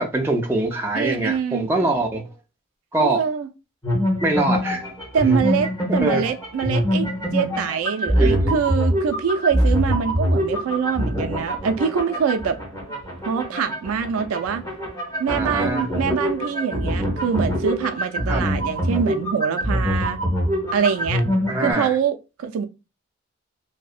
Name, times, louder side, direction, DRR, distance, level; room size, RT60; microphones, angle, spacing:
voice 1, 0.0-2.2 2.9-3.2 4.2-4.8 6.0-6.3 8.1-8.6 15.3-15.9 18.3-18.5 21.5-22.0, right 2 dB, 10° right, 0.3 m, -23 dB
voice 2, 0.9-1.7 3.0-3.5 5.1-12.6 13.3-14.6 15.2-20.2 20.7-21.2 21.6-22.7, right 7 dB, 90° right, 0.4 m, -24 dB
sound 1, 3.8-21.7, equal, 15° left, 0.9 m, -24 dB
2.6 x 2.1 x 2.4 m
head